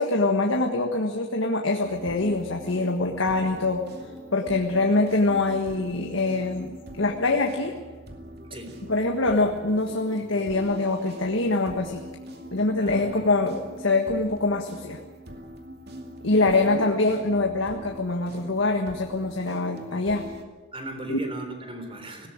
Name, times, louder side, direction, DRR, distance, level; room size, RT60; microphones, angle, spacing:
voice 1, 0.0-3.9 4.3-7.8 8.9-12.0 12.5-15.0 16.2-20.3 21.1-21.2, left 2 dB, 70° left, 3 dB, 1.6 m, -24 dB
sound 1, 1.8-20.4, equal, 50° right, 2.5 m, -43 dB
voice 2, 8.4-8.8 12.8-13.3 16.4-16.8 20.7-22.3, right 1 dB, 25° right, 6 dB, 3.5 m, -37 dB
19.5 x 17.5 x 8.9 m, 1.3 s
head